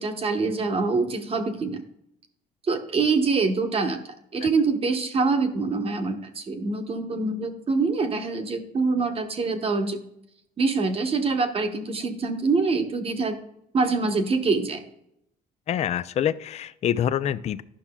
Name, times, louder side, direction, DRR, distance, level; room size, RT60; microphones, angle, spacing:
voice 1, 0.0-1.8 2.7-4.0 4.3-10.0 10.6-13.4 13.7-14.8, right 4 dB, 35° right, 7 dB, 1.0 m, -25 dB
voice 2, 15.7-17.6, left 9 dB, 40° left, 14 dB, 0.4 m, -26 dB
11.5 x 5.9 x 2.3 m, 0.75 s
cardioid pair, 110°, 17 cm